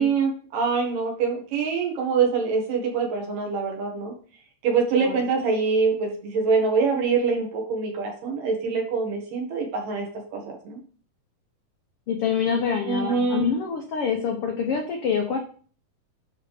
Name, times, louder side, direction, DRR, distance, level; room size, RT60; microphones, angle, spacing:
voice 1, 0.0-4.1 4.6-10.1 10.3-10.8 12.8-13.5, right 5 dB, 75° right, 1 dB, 3.3 m, -24 dB
voice 2, 12.1-15.4, left 6 dB, 75° left, 2 dB, 1.3 m, -26 dB
10.0 x 3.5 x 5.0 m, 0.42 s
omnidirectional pair, 3.9 m